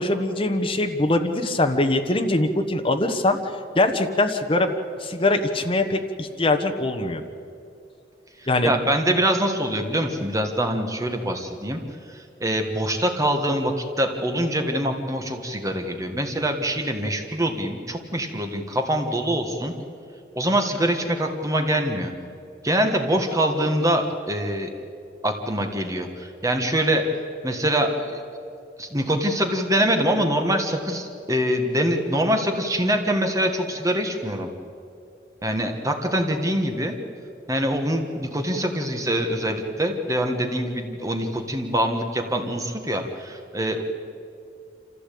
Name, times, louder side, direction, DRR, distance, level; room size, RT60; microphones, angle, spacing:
voice 1, 0.0-3.4 3.7-4.7 5.0-7.2 8.5-8.7, left 2 dB, 30° left, 5 dB, 1.2 m, -22 dB
voice 2, 8.6-11.8 12.1-19.7 20.4-22.1 22.6-24.7 25.2-27.0 27.4-28.2 28.8-34.5 35.4-37.0 37.5-43.8, right 1 dB, 20° right, 4 dB, 1.6 m, -24 dB
26.5 x 15.5 x 8.6 m, 2.5 s
head